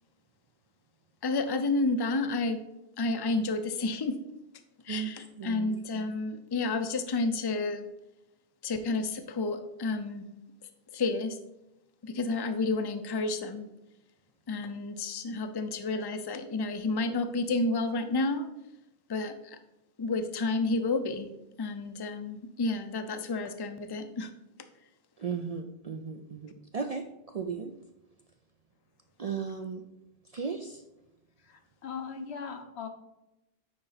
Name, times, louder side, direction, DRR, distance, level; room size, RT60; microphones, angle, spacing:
voice 1, 1.2-2.6 3.0-4.1 4.9-7.9 8.6-10.3 10.9-11.4 12.0-13.7 14.5-18.5 19.1-19.3 20.0-21.3 21.6-24.3, left 3 dB, 30° left, 8 dB, 0.4 m, -30 dB
voice 2, 5.3-5.8 25.2-27.0 27.3-27.7 29.2-29.8 30.3-30.8, right 6 dB, 50° right, 5 dB, 0.4 m, -35 dB
voice 3, 31.5-32.9, left 6 dB, 75° left, 6 dB, 1.1 m, -39 dB
9.6 x 3.9 x 4.0 m, 0.92 s
omnidirectional pair, 1.1 m